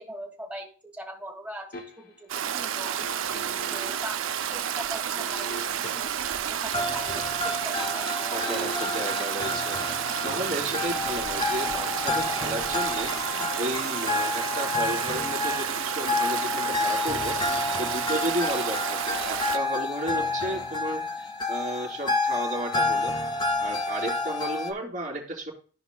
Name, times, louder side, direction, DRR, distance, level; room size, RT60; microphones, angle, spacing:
voice 1, 0.0-3.2 3.7-4.2 4.5-5.6 5.9-6.1 6.5-8.9, equal, 5° right, 0 dB, 1.5 m, -41 dB
sound 1, 1.7-2.3 3.0-4.2 5.2-6.3 7.6-18.5 18.8-19.0, right 1 dB, 45° left, 1.0 m, -45 dB
Stream, 2.3-19.6, right 9 dB, 80° right, 0.5 m, -30 dB
voice 2, 3.3-3.7 8.3-23.2 23.6-25.5, right 1 dB, 40° right, -6 dB, 3.3 m, -33 dB
sound 2, 6.7-24.7, left 3 dB, 20° left, 0.6 m, -30 dB
14.0 x 5.1 x 2.3 m, 0.39 s
head